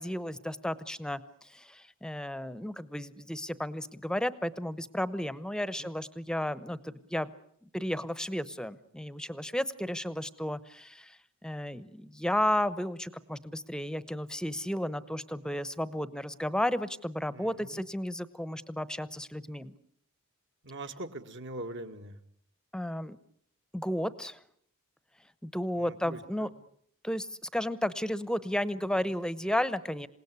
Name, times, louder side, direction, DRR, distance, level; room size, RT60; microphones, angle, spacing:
voice 1, 0.0-7.3 7.6-19.7 22.7-23.2 23.7-24.4 25.4-26.5 27.0-30.1, left 1 dB, 5° left, 15 dB, 0.9 m, -33 dB
voice 2, 17.3-17.8 20.6-22.2 25.8-26.5, right 2 dB, 55° right, 7 dB, 1.8 m, -42 dB
27.5 x 18.0 x 9.6 m, 0.69 s
head